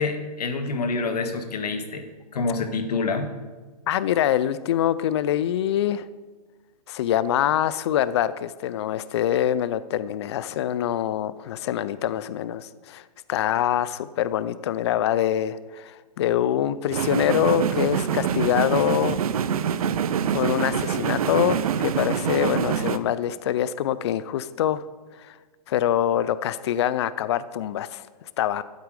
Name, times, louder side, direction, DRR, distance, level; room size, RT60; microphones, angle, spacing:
voice 1, 0.0-2.0 2.3-3.3, left 4 dB, 70° left, 7 dB, 1.6 m, -27 dB
voice 2, 3.9-6.0 6.9-19.2 20.3-24.8 25.2-25.3 25.7-28.6, left 11 dB, 40° left, 16 dB, 0.4 m, -25 dB
sound 1, 16.9-23.0, right 8 dB, 60° right, 0.7 m, -25 dB
12.0 x 8.4 x 4.8 m, 1.4 s
hypercardioid pair, 160°, 21 cm